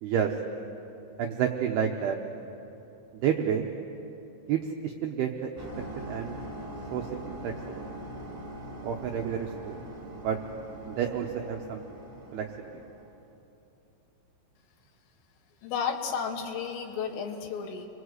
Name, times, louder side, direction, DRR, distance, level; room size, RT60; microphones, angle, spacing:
voice 1, 0.0-0.3 1.2-2.2 3.2-3.7 4.5-5.5 6.1-6.3 6.9-7.8 8.8-9.8 10.2-10.4 10.9-11.8 12.3-12.8, right 8 dB, 80° right, 2 dB, 2.3 m, -30 dB
sound 1, 5.6-13.2, right 1 dB, 5° right, 2.0 m, -42 dB
voice 2, 15.6-17.9, left 6 dB, 75° left, 4 dB, 4.2 m, -32 dB
29.5 x 22.5 x 8.1 m, 3.0 s
omnidirectional pair, 6.0 m